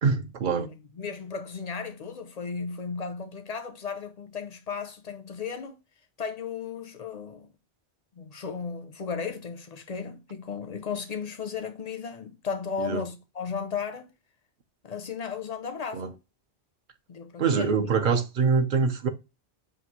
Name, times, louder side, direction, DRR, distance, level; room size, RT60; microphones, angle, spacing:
voice 1, 0.0-0.7 12.8-13.0 15.9-16.1 17.4-19.1, right 5 dB, 55° right, 0.7 m, -24 dB
voice 2, 0.6-5.8 6.2-7.5 8.2-14.1 14.8-16.2 17.1-17.9, left 6 dB, 50° left, 0.5 m, -35 dB
5.9 x 2.6 x 2.8 m
omnidirectional pair, 1.1 m